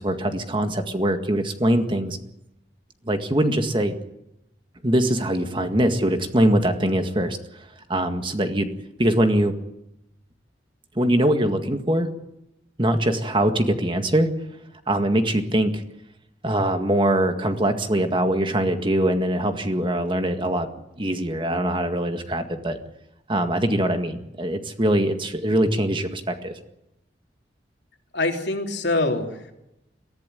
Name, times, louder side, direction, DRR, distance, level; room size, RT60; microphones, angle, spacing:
voice 1, 0.0-2.2 3.1-3.9 4.8-7.4 7.9-8.7 9.0-9.5 11.0-12.1 12.8-14.3 14.9-15.8 16.4-20.7 21.0-22.8 23.3-26.5, right 1 dB, 30° right, 6 dB, 1.9 m, -22 dB
voice 2, 28.1-29.5, left 2 dB, 80° left, 2 dB, 3.4 m, -24 dB
22.5 x 15.0 x 9.3 m, 0.87 s
head